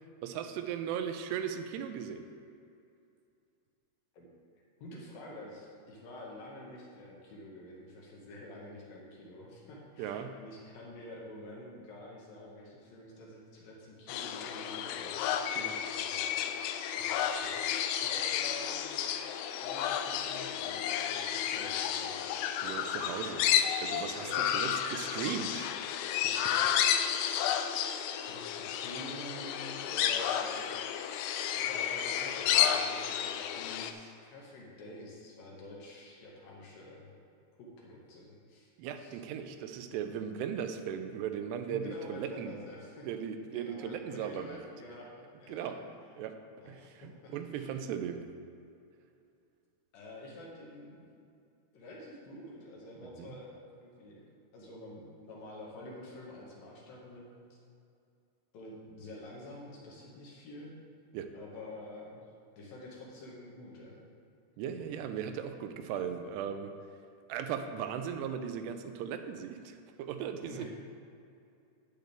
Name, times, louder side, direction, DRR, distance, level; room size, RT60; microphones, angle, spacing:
voice 1, 0.2-2.2 10.0-10.3 15.6-15.7 22.6-25.7 26.2-26.3 38.8-42.5 43.1-44.6 45.5-45.8 46.2-46.3 46.7-48.2 53.2-53.4 61.1-61.3 64.6-66.7 67.3-70.7, right 8 dB, 80° right, 8 dB, 2.6 m, -37 dB
voice 2, 4.8-15.6 16.0-16.4 17.0-18.8 19.6-22.5 24.2-24.5 28.2-30.7 31.5-37.1 37.6-38.7 39.0-39.2 41.7-43.1 43.5-45.1 45.4-45.7 46.6-47.7 49.9-51.1 51.7-54.3 54.5-57.4 58.5-60.8 61.3-62.2 62.6-64.0 64.7-64.9 70.4-70.7, left 1 dB, 65° left, -3 dB, 2.6 m, -48 dB
sound 1, 14.1-33.9, left 9 dB, 85° left, 2.4 m, -32 dB
10.5 x 9.3 x 3.4 m, 2.5 s
omnidirectional pair, 5.0 m